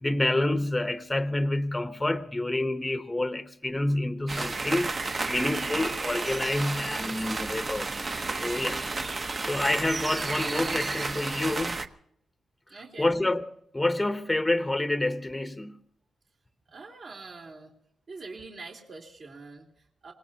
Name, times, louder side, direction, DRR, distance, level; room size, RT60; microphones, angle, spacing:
voice 1, 0.0-4.9 5.3-7.9 8.4-8.9 9.5-11.8 13.0-13.5 13.7-15.8, left 1 dB, 10° left, 0.8 m, -28 dB
sound 1, 4.3-11.9, right 3 dB, 35° right, 0.9 m, -32 dB
voice 2, 12.7-13.1 16.7-17.7 18.1-20.1, right 3 dB, 60° right, 3.2 m, -44 dB
26.0 x 19.0 x 2.8 m
wide cardioid pair, 115°, 0 cm